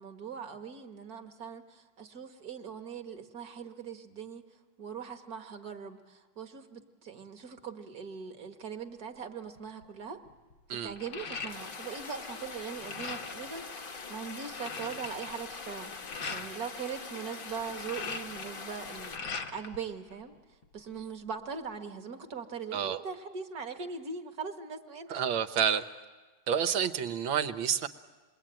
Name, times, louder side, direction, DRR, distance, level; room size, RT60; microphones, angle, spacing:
voice 1, 0.0-4.4 4.8-10.2 10.7-20.3 20.7-25.2, right 6 dB, 50° right, 6 dB, 1.9 m, -41 dB
sound 1, 9.6-9.8 10.3-12.0 12.3-13.5 14.0-14.1 14.3-16.5 17.5-19.8 20.1-21.0, left 5 dB, 70° left, 2.4 m, -41 dB
sound 2, 11.5-19.2, left 4 dB, 40° left, 0.8 m, -43 dB
voice 2, 25.1-25.8 26.5-27.9, right 8 dB, 75° right, 9 dB, 1.8 m, -29 dB
28.0 x 22.0 x 9.0 m, 1.3 s
omnidirectional pair, 2.3 m